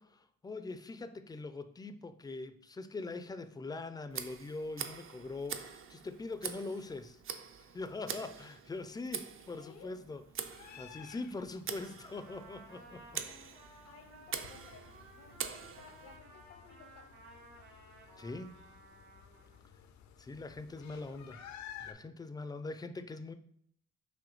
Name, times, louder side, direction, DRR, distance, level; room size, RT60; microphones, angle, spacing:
voice 1, 0.0-7.2 7.7-13.0 18.2-18.5 20.2-21.5 21.8-23.3, left 3 dB, 15° left, 10 dB, 0.4 m, -42 dB
Tick, 4.1-16.2, right 7 dB, 45° right, 0.5 m, -45 dB
voice 2, 9.5-9.9 13.8-17.1, left 6 dB, 85° left, 4 dB, 1.0 m, -56 dB
sound 1, 10.5-21.9, left 9 dB, 65° left, 0.5 m, -55 dB
Trumpet, 11.8-19.6, right 2 dB, 70° right, 1.9 m, -57 dB
6.2 x 2.7 x 3.1 m, 0.68 s
cardioid pair, 90°, 30 cm